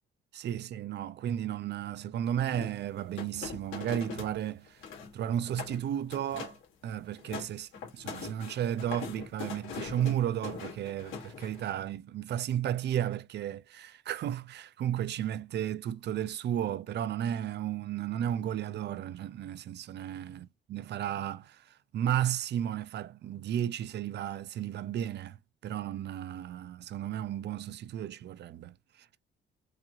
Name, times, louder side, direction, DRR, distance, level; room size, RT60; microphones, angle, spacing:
voice 1, 0.3-4.8 5.1-25.4 25.6-28.7, right 10 dB, 60° right, 0.5 m, -34 dB
sound 1, 2.5-4.4 4.6-5.1 5.5-5.8 6.1-6.6 7.0-11.7, left 6 dB, 85° left, 2.1 m, -42 dB
4.7 x 2.8 x 2.5 m
cardioid pair, 90°, 20 cm